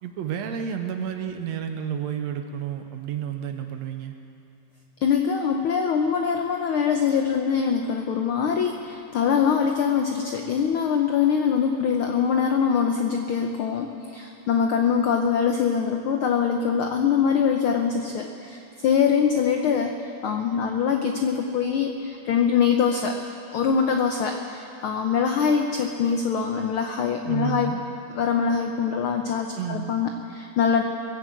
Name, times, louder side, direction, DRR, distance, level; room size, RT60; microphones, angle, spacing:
voice 1, 0.0-4.1 27.2-27.8 29.5-29.9, right 9 dB, 70° right, 6 dB, 1.9 m, -31 dB
voice 2, 5.0-19.9 20.2-27.7 28.1-30.8, left 7 dB, 90° left, 4 dB, 1.1 m, -23 dB
21.5 x 7.7 x 7.7 m, 2.7 s
omnidirectional pair, 3.3 m